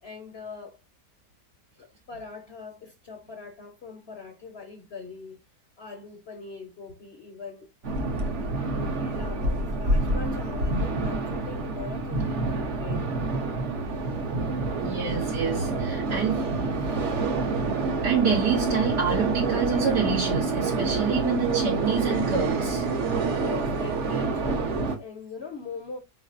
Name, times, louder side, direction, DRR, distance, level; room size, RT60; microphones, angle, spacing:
voice 1, 0.0-0.8 1.8-5.4 5.8-7.7 8.6-13.1 23.3-26.0, left 4 dB, 55° left, 0.8 m, -41 dB
sound 1, 7.8-25.0, right 3 dB, 55° right, 1.0 m, -27 dB
voice 2, 14.7-16.5 18.0-22.9, right 5 dB, 80° right, 1.9 m, -27 dB
4.6 x 4.0 x 2.4 m
omnidirectional pair, 1.8 m